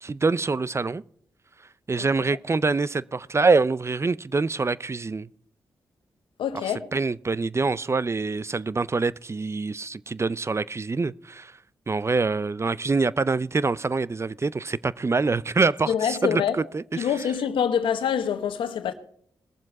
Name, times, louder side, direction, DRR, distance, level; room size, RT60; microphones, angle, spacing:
voice 1, 0.0-1.0 1.9-5.3 6.9-11.6 11.9-17.1, right 4 dB, 35° right, 0.5 m, -25 dB
voice 2, 6.4-6.9 15.9-16.6 17.0-18.9, left 8 dB, 85° left, 1.1 m, -25 dB
20.5 x 7.4 x 4.7 m
cardioid pair, 55°, 8 cm